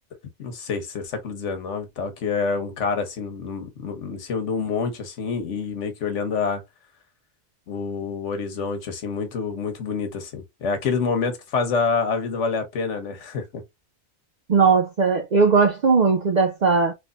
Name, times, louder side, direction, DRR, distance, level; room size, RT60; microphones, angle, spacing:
voice 1, 0.4-6.6 7.7-13.6, left 5 dB, 80° left, 1.3 m, -27 dB
voice 2, 14.5-16.9, right 5 dB, 55° right, 0.5 m, -18 dB
3.3 x 3.1 x 2.5 m
omnidirectional pair, 1.2 m